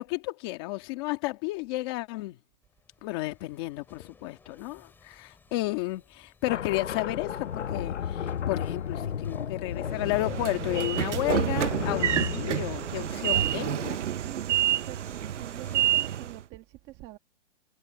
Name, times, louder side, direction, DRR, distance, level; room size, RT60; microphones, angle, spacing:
voice 1, 0.0-2.4 3.0-14.1, left 20 dB, 20° left, 2.0 m, -32 dB
sound 1, 2.6-16.2, left 4 dB, 5° left, 8.0 m, -58 dB
sound 2, 6.5-13.9, left 8 dB, 75° left, 1.4 m, -34 dB
Train / Sliding door, 9.9-16.4, right 10 dB, 75° right, 0.8 m, -28 dB
voice 2, 14.2-17.2, right 17 dB, 15° right, 1.4 m, -46 dB
hypercardioid pair, 175°, 36 cm